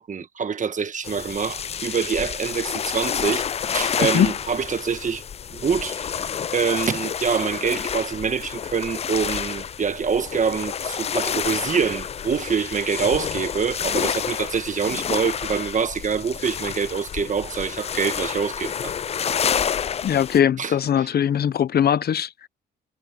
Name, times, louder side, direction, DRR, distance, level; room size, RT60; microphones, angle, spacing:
voice 1, 0.0-5.2 5.5-19.0 20.6-20.7, right 6 dB, 40° right, 1.4 m, -25 dB
sound 1, 1.0-20.4, left 8 dB, 30° left, 0.4 m, -29 dB
voice 2, 4.0-4.3 20.0-22.5, left 9 dB, 50° left, 0.8 m, -21 dB
cardioid pair, 90°, 20 cm